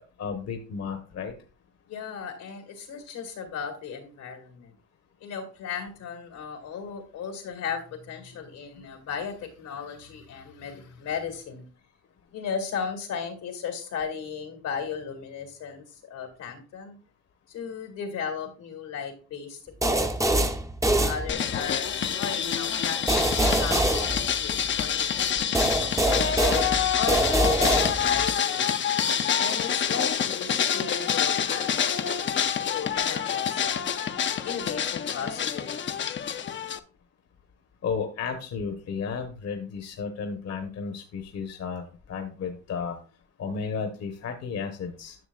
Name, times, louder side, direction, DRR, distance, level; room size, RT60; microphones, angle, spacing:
voice 1, 0.2-1.3 7.3-7.4 37.8-43.0 43.4-45.2, left 5 dB, 60° left, 5 dB, 1.1 m, -33 dB
voice 2, 1.9-4.7 5.2-11.6 12.3-17.0 17.5-20.5 21.0-26.5 27.0-28.9 29.4-33.8 34.4-36.2, left 6 dB, 90° left, 5 dB, 2.2 m, -36 dB
sound 1, 19.8-21.7 23.1-24.8 25.5-28.3, right 1 dB, 10° right, 0.6 m, -25 dB
sound 2, 21.3-36.8, left 8 dB, 40° left, 0.5 m, -27 dB
11.0 x 6.2 x 2.4 m, 0.36 s
cardioid pair, 90°, 30 cm